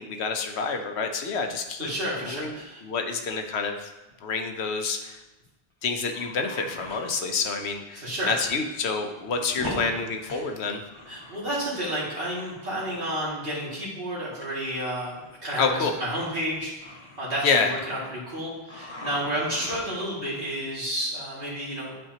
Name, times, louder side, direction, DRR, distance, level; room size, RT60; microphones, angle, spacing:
voice 1, 0.0-1.9 2.2-3.9 4.2-5.2 5.8-10.8 15.6-15.9 17.4-17.7, left 4 dB, 85° left, 5 dB, 1.1 m, -28 dB
sound 1, 1.6-1.9 2.2-2.3 3.2-3.5 3.9-4.0 4.1-4.4 5.2-5.3 5.8-7.1 7.7-7.8 8.2-8.7 8.9-11.8 12.0-13.3 14.4-14.5 15.0-18.4 18.7-20.1 21.0-21.2, left 1 dB, 25° left, 1.3 m, -42 dB
voice 2, 1.8-2.8 8.0-8.3 9.6-9.8 11.1-16.7 17.2-22.0, right 1 dB, 60° right, -7 dB, 2.6 m, -31 dB
11.0 x 4.6 x 2.9 m, 1.0 s
omnidirectional pair, 1.1 m